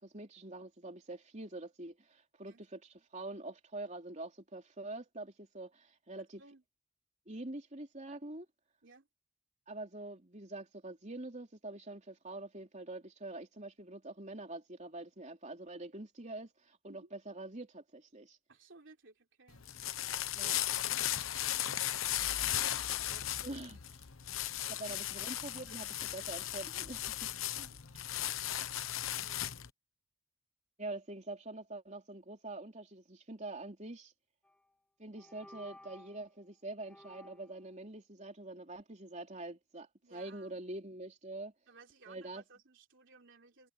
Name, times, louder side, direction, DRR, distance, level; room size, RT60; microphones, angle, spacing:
voice 1, 0.0-6.4 7.3-8.5 9.7-18.4 20.3-20.6 23.4-23.8 24.7-27.3 27.6-27.7 30.8-34.1 35.0-41.5 42.1-42.4, right 2 dB, 35° right, 3.5 m, -45 dB
voice 2, 6.2-6.6 8.8-9.1 16.9-17.1 18.5-19.7 20.4-20.5 21.8-23.6 24.6-25.0 25.7-25.8 27.5-27.8 29.1-29.6 40.0-40.6 41.7-43.7, right 3 dB, 65° right, 3.6 m, -60 dB
sound 1, 19.5-29.7, left 12 dB, 80° left, 1.0 m, -36 dB
sound 2, 34.4-34.7 35.1-36.3 36.8-37.6, left 1 dB, 5° left, 1.7 m, -56 dB
head